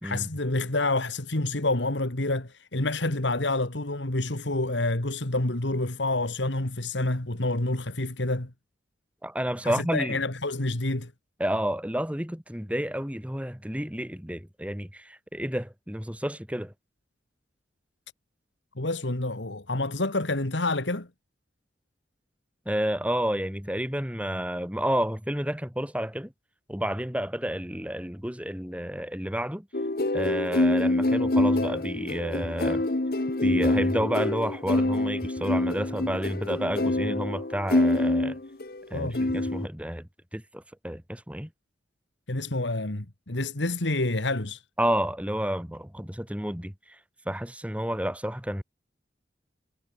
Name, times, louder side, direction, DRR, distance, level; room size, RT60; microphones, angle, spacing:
voice 1, 0.0-8.5 9.6-11.1 18.8-21.1 38.9-39.2 42.3-44.6, left 2 dB, 80° left, 2.3 m, -28 dB
voice 2, 9.2-10.2 11.4-16.7 22.7-26.3 26.7-29.7 30.1-32.8 33.4-38.4 38.9-41.5 44.8-46.7 47.3-48.6, equal, 5° right, 2.3 m, -30 dB
sound 1, 29.7-38.8 39.1-39.7, left 2 dB, 50° left, 1.0 m, -26 dB
head